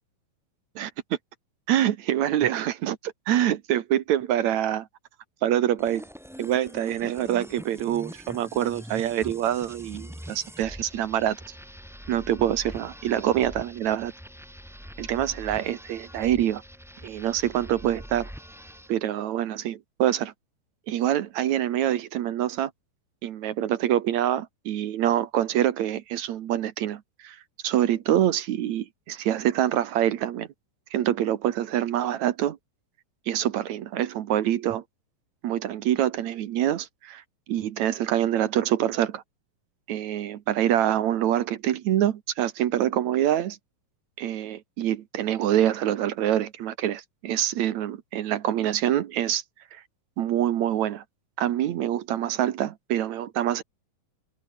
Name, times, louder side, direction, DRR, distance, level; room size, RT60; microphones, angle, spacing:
voice 1, 1.7-4.9 5.4-6.1 6.4-11.4 12.1-14.1 15.0-16.6 17.0-18.3 18.9-20.3 20.9-22.7 23.2-27.4 27.6-30.5 30.9-32.6 33.3-34.8 35.4-37.2 37.5-39.2 39.9-43.6 44.2-49.4 49.7-49.8 50.2-51.0 51.4-53.6, right 11 dB, 65° right, 2.1 m, -25 dB
sound 1, 5.8-19.0, equal, ahead, 2.0 m, -43 dB
omnidirectional pair, 4.2 m